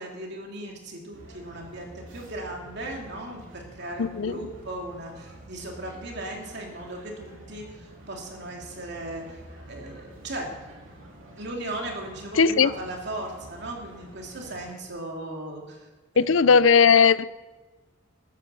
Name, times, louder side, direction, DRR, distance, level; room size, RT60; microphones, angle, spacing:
voice 1, 0.0-9.4 9.7-10.5 11.4-15.9 16.1-16.3, right 1 dB, 55° right, 2.9 m, -37 dB
sound 1, 1.1-14.8, right 1 dB, 70° right, 3.1 m, -48 dB
voice 2, 4.0-4.3 12.4-12.7 16.2-17.3, left 6 dB, 75° left, 0.5 m, -18 dB
13.5 x 10.0 x 6.9 m
head